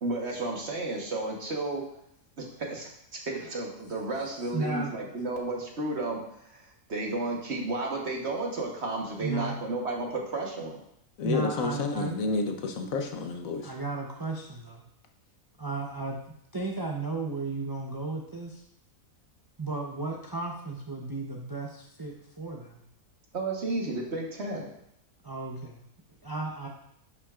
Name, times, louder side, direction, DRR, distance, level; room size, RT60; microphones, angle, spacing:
voice 1, 0.0-1.9 2.4-6.6 6.9-10.8 23.3-24.7, right 2 dB, 50° right, 0 dB, 1.5 m, -32 dB
voice 2, 4.5-4.9 9.2-9.6 11.2-12.1 13.6-14.8 15.6-16.2 16.5-18.6 19.6-22.8 25.2-25.8 26.2-26.7, right 3 dB, 25° right, -1 dB, 0.5 m, -34 dB
voice 3, 11.2-13.7, left 3 dB, 70° left, 5 dB, 1.2 m, -30 dB
11.0 x 5.9 x 2.4 m, 0.75 s
omnidirectional pair, 1.5 m